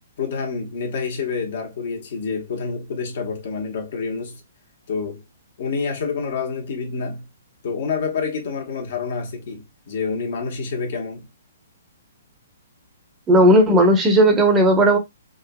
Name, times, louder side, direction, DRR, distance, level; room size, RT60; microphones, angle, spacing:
voice 1, 0.2-4.4 4.9-5.2 5.6-7.3 7.6-11.3, left 5 dB, 60° left, 1.3 m, -28 dB
voice 2, 13.3-15.0, right 1 dB, 15° right, 1.0 m, -14 dB
3.7 x 2.7 x 2.3 m
hypercardioid pair, 135°, 0 cm